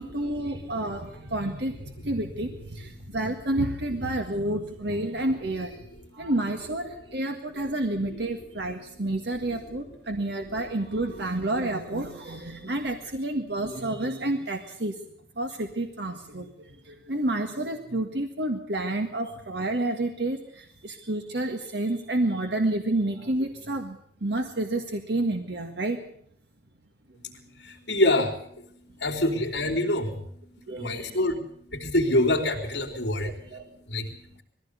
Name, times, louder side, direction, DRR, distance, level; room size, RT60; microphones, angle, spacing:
voice 1, 0.0-5.9 6.1-15.0 15.4-26.0 30.7-31.2 33.2-33.6, right 1 dB, 70° right, 4 dB, 1.8 m, -29 dB
voice 2, 27.2-34.4, left 1 dB, 70° left, -7 dB, 3.3 m, -27 dB
21.0 x 15.5 x 8.2 m, 0.67 s
head